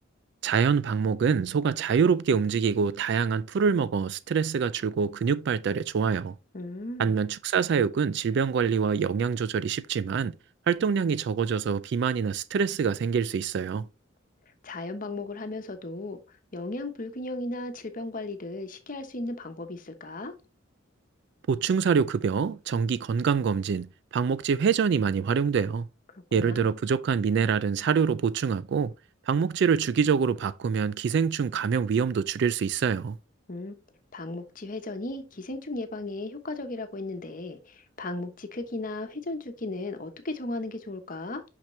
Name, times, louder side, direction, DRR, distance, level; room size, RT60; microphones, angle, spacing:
voice 1, 0.4-6.3 7.0-10.4 10.7-13.9 21.5-25.9 26.3-28.9 29.3-33.2, right 6 dB, 60° right, 0.3 m, -25 dB
voice 2, 6.5-7.1 14.6-16.2 16.5-20.3 26.3-26.7 33.5-33.8 34.1-41.4, left 2 dB, 45° left, 1.1 m, -35 dB
5.9 x 5.9 x 3.1 m
head